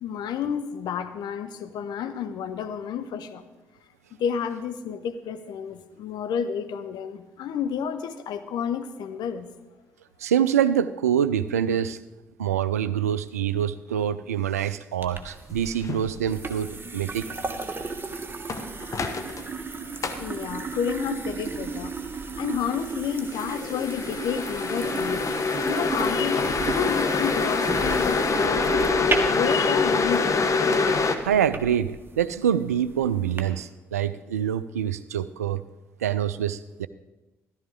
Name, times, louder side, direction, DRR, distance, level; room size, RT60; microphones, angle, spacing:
voice 1, 0.0-3.4 4.2-9.5 19.6-21.9 22.4-25.2 25.6-30.5, left 7 dB, 60° left, 9 dB, 0.9 m, -31 dB
voice 2, 10.2-12.0 12.4-17.3 31.2-35.6 36.0-36.9, right 9 dB, 85° right, 15 dB, 0.3 m, -25 dB
sound 1, 15.0-33.4, right 4 dB, 25° right, 1.4 m, -35 dB
sound 2, 15.8-16.0 18.5-19.4 20.0-20.2 23.3-31.2, left 4 dB, 40° left, 1.1 m, -25 dB
14.0 x 12.5 x 3.8 m, 1.1 s
figure-of-eight pair, 40°, 8 cm